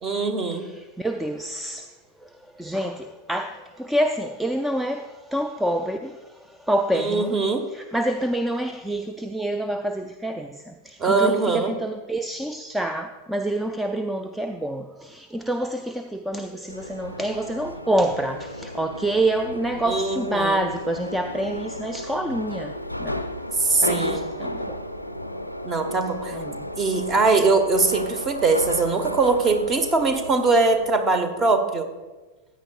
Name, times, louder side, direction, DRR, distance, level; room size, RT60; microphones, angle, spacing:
voice 1, 0.0-0.7 6.9-7.6 11.0-11.7 19.9-20.6 23.6-24.3 25.6-26.4 26.8-31.9, right 3 dB, 25° right, 1.1 m, -22 dB
voice 2, 0.5-1.9 2.2-7.4 7.7-23.2 23.8-24.8 26.3-26.7 26.9-27.0, right 1 dB, 5° right, 0.4 m, -27 dB
Subway metro underground, 16.7-31.0, left 1 dB, 90° left, 0.4 m, -33 dB
14.5 x 9.4 x 2.3 m
figure-of-eight pair, 90°, 0 cm